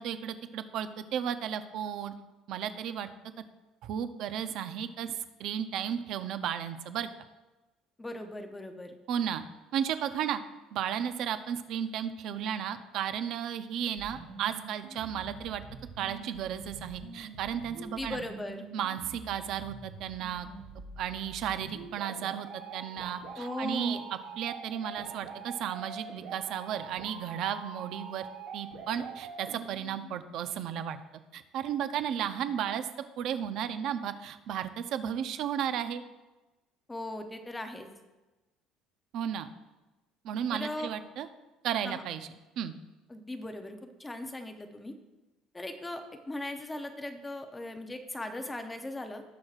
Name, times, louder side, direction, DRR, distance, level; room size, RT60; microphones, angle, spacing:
voice 1, 0.0-2.1 2.5-3.1 3.8-5.1 5.4-7.1 9.1-9.4 9.7-10.4 10.7-15.6 16.0-18.2 18.7-20.5 21.0-28.3 28.5-31.0 31.3-32.9 33.2-36.0 39.1-39.5 40.2-41.3 41.6-42.3 42.6-42.7, right 9 dB, 45° right, 10 dB, 0.5 m, -34 dB
voice 2, 8.0-9.0 17.8-18.7 23.4-24.1 36.9-37.9 40.5-40.9 41.8-42.1 43.1-44.9 45.5-49.2, left 1 dB, 10° left, 6 dB, 0.6 m, -38 dB
sound 1, 14.0-30.0, right 5 dB, 80° right, 1.9 m, -45 dB
18.0 x 6.2 x 2.4 m, 1.1 s
cardioid pair, 180°, 0 cm